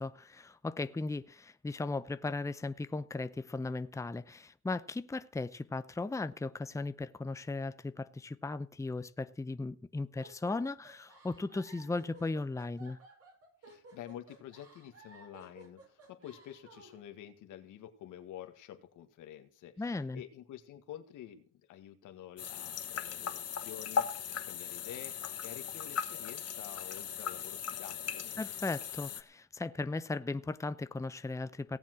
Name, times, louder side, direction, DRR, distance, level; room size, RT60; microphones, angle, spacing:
voice 1, 0.0-13.0 19.8-20.2 28.4-31.8, left 3 dB, 10° left, 0.7 m, -37 dB
sound 1, 10.2-17.0, right 2 dB, 50° right, 7.2 m, -56 dB
voice 2, 13.6-28.4, left 11 dB, 85° left, 1.9 m, -49 dB
sound 2, 22.4-29.2, left 7 dB, 55° left, 1.4 m, -38 dB
17.5 x 7.3 x 6.2 m
cardioid pair, 90°, 30 cm